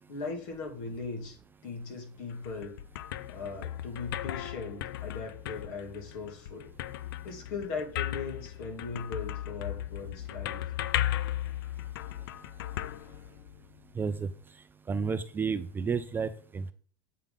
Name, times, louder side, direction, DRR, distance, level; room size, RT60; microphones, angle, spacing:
voice 1, 0.1-2.8 3.3-6.7 7.2-10.6, left 4 dB, 60° left, 1 dB, 2.7 m, -39 dB
sound 1, 2.3-13.8, left 13 dB, 85° left, 0.4 m, -36 dB
voice 2, 14.0-14.3 14.9-16.7, right 5 dB, 15° right, 12 dB, 0.4 m, -31 dB
8.4 x 3.8 x 5.2 m, 0.43 s
supercardioid pair, 135°, 12 cm